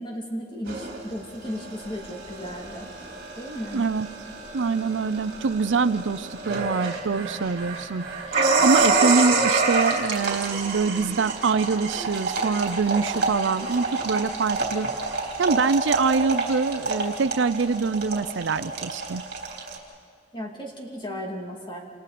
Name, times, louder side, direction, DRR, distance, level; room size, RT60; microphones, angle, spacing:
voice 1, 0.0-2.9 3.4-3.9 20.3-21.8, equal, 25° left, 0 dB, 2.7 m, -35 dB
sound 1, 0.7-19.8, right 3 dB, 55° right, 3.6 m, -27 dB
voice 2, 3.7-4.1 4.5-14.9 15.4-19.2, right 4 dB, 80° right, 14 dB, 0.5 m, -24 dB
Human voice / Subway metro underground, 10.0-15.5, right 1 dB, 10° right, 3.7 m, -44 dB
29.5 x 28.0 x 4.3 m, 2.3 s
head